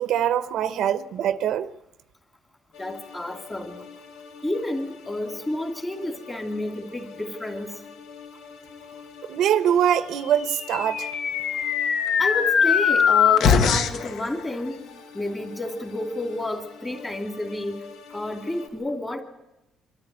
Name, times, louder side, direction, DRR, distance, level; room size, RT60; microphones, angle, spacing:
voice 1, 0.0-1.7 9.3-11.1, right 10 dB, 60° right, 0.9 m, -23 dB
sound 1, 2.7-18.7, left 5 dB, 90° left, 6.5 m, -45 dB
voice 2, 2.8-3.8 4.4-7.8 12.2-14.8 15.1-17.8 18.1-19.2, left 1 dB, 10° left, 2.7 m, -30 dB
sound 2, 10.5-14.1, left 7 dB, 55° left, 1.5 m, -21 dB
25.5 x 14.0 x 9.4 m
cardioid pair, 170°, 0 cm